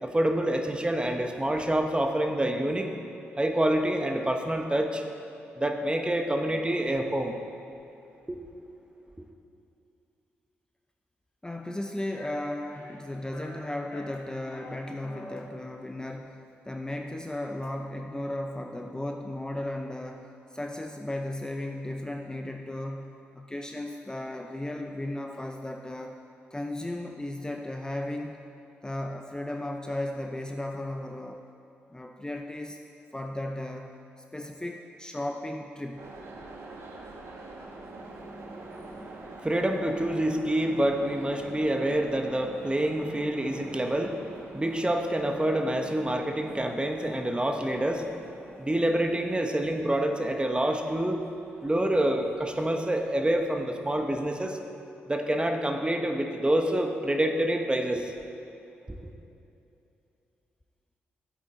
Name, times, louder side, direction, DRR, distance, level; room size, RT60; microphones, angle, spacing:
voice 1, 0.0-2.9 3.4-5.0 5.6-7.3 8.3-8.4 38.0-48.2 48.6-51.2 51.6-54.6 55.1-58.1, right 1 dB, 20° right, 4 dB, 1.1 m, -27 dB
voice 2, 11.4-26.2 26.5-28.4 28.8-31.4 31.9-32.8 33.1-34.0 34.3-36.1, left 1 dB, 15° left, 3 dB, 0.6 m, -35 dB
sound 1, 12.1-12.3 12.7-13.0 13.3-13.6 13.9-14.7 15.0-15.4, left 2 dB, 45° left, 1.6 m, -45 dB
sound 2, 36.0-53.6, right 2 dB, 60° right, 1.3 m, -47 dB
12.0 x 8.0 x 3.9 m, 2.8 s
hypercardioid pair, 40°, 5 cm